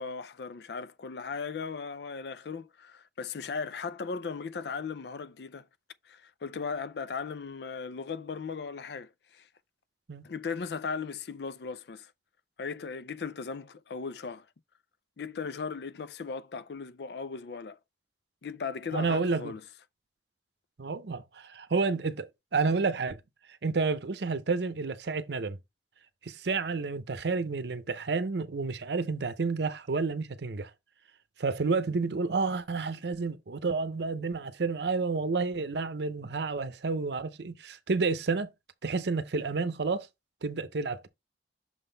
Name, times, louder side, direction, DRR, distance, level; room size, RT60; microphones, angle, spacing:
voice 1, 0.0-5.7 6.1-9.5 10.2-12.1 12.6-14.5 15.2-17.8 18.4-19.6, left 5 dB, 65° left, 0.4 m, -37 dB
voice 2, 18.9-19.6 20.8-23.2 23.6-25.6 26.2-30.7 31.4-38.5 38.8-40.1 40.4-41.1, right 4 dB, 70° right, 0.7 m, -30 dB
6.5 x 3.8 x 3.9 m
head